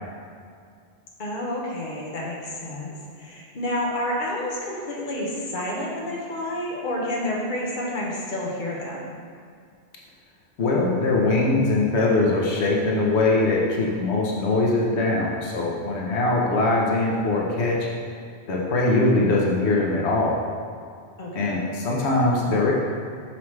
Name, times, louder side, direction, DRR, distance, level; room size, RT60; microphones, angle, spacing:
voice 1, 1.2-9.1 21.2-21.6, left 1 dB, 50° left, -3 dB, 1.1 m, -29 dB
voice 2, 10.6-17.9 18.5-20.3 21.3-22.7, left 2 dB, 85° left, -3 dB, 1.1 m, -22 dB
5.7 x 5.5 x 3.2 m, 2.3 s
omnidirectional pair, 1.1 m